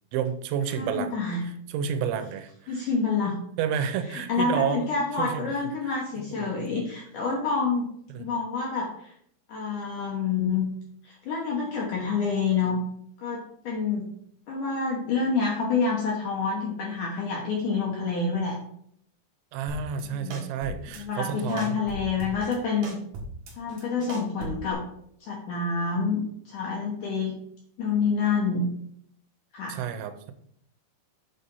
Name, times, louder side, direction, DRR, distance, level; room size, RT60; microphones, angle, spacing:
voice 1, 0.1-1.1 1.7-2.9 3.6-4.9 5.2-5.5 5.8-5.9 6.3-6.5 8.1-8.3 19.5-21.8 29.7-30.3, right 7 dB, 85° right, 9 dB, 3.0 m, -30 dB
voice 2, 0.7-1.5 2.7-3.3 4.1-7.9 8.2-9.1 9.5-10.7 11.0-12.8 13.2-14.1 14.5-18.6 20.0-20.4 21.0-23.0 23.6-24.8 25.2-27.3 27.8-28.7 29.5-29.8, left 4 dB, 70° left, -1 dB, 1.9 m, -28 dB
sound 1, 19.7-20.0 20.3-21.0 21.3-22.6 22.8-24.7, right 1 dB, 60° right, 2.6 m, -38 dB
8.2 x 4.2 x 5.4 m, 0.67 s
omnidirectional pair, 5.1 m